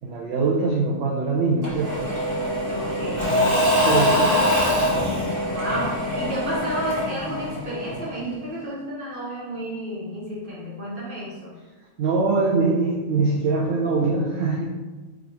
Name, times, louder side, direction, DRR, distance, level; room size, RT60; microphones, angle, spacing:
voice 1, 0.0-2.0 2.8-4.3 12.0-14.7, right 3 dB, 65° right, -2 dB, 0.8 m, -23 dB
Engine / Mechanisms / Drill, 1.6-8.3, equal, 25° right, 1.1 m, -23 dB
voice 2, 2.7-3.3 3.9-4.4 5.5-11.5, equal, 50° right, -6 dB, 1.3 m, -31 dB
4.8 x 2.5 x 2.9 m, 1.2 s
omnidirectional pair, 1.2 m